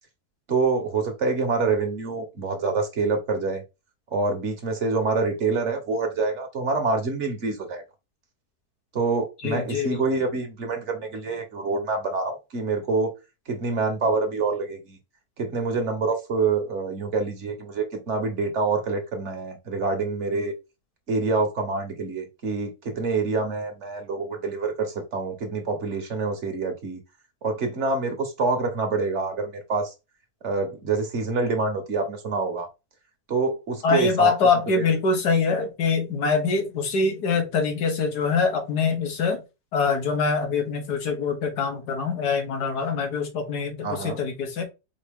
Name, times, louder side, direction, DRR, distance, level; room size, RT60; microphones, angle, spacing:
voice 1, 0.5-3.6 4.1-7.8 8.9-13.1 13.5-15.0 15.4-20.5 21.1-27.0 27.4-29.9 30.4-32.7 33.3-34.3 34.8-34.9 43.8-44.2, right 4 dB, 50° right, 1.3 m, -26 dB
voice 2, 9.4-10.0 33.8-39.4 39.7-44.6, left 4 dB, 90° left, 1.8 m, -24 dB
4.8 x 2.8 x 3.5 m
omnidirectional pair, 1.7 m